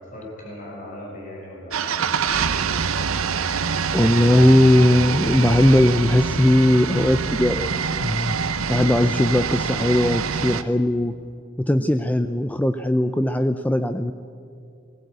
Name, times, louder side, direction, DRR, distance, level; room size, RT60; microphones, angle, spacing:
voice 1, 0.1-2.9, left 1 dB, 40° left, -4 dB, 6.7 m, -38 dB
sound 1, 1.7-10.6, right 6 dB, 75° right, 0.8 m, -25 dB
voice 2, 3.9-7.7 8.0-8.4 8.7-11.1 11.6-14.1, left 1 dB, 5° left, 9 dB, 0.5 m, -18 dB
20.0 x 17.5 x 8.2 m, 2.4 s
head